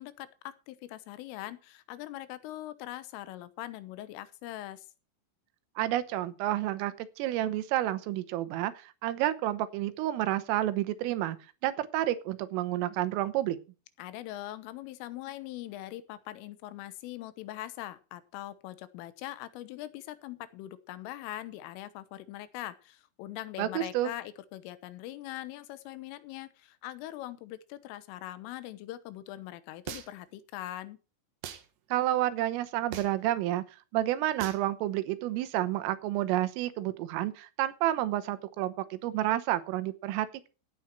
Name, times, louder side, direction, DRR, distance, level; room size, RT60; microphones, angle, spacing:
voice 1, 0.0-4.9 14.0-31.0, left 14 dB, 85° left, 14 dB, 3.6 m, -42 dB
voice 2, 5.8-11.4 11.6-13.6 23.6-24.1 31.9-33.6 33.9-40.5, right 14 dB, 90° right, 13 dB, 3.7 m, -30 dB
sound 1, 29.9-30.3 31.4-31.7 32.9-33.3 34.4-34.7, right 10 dB, 70° right, 3.4 m, -40 dB
16.0 x 8.9 x 4.5 m, 0.33 s
omnidirectional pair, 5.7 m